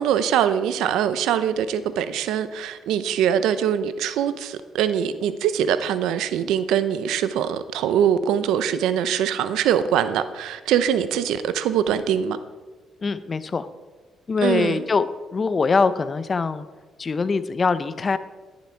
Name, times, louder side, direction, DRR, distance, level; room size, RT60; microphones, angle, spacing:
voice 1, 0.0-12.4 14.4-14.8, right 9 dB, 90° right, 0.7 m, -23 dB
voice 2, 13.0-13.7 14.3-16.7 17.0-18.2, left 4 dB, 35° left, 0.7 m, -23 dB
11.5 x 10.5 x 4.6 m
cardioid pair, 90°, 0 cm